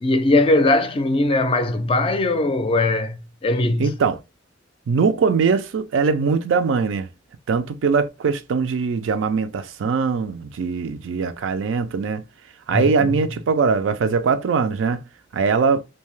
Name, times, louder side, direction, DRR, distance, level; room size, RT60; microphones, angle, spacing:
voice 1, 0.0-3.9 12.7-13.2, left 2 dB, 30° left, 0.4 m, -20 dB
voice 2, 3.8-4.2 4.9-7.1 7.5-12.2 12.7-15.0 15.3-15.8, right 5 dB, 75° right, 0.4 m, -21 dB
2.7 x 2.2 x 3.0 m
head